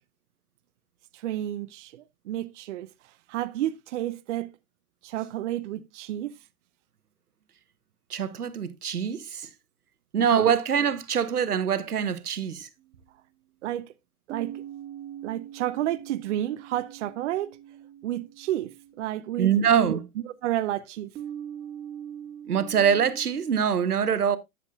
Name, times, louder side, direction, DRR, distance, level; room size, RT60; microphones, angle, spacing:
voice 1, 1.1-4.5 5.0-6.4 10.2-10.5 13.6-13.9 14.3-14.6 15.2-17.6 18.0-20.0 20.2-21.1, right 13 dB, 55° right, 0.7 m, -31 dB
voice 2, 8.1-9.5 10.1-12.7 19.4-20.0 22.5-24.4, right 8 dB, 90° right, 1.0 m, -24 dB
sound 1, 12.8-12.9 14.3-19.7 21.1-23.3, right 9 dB, 25° right, 1.6 m, -42 dB
12.0 x 7.4 x 2.3 m
hypercardioid pair, 125°, 44 cm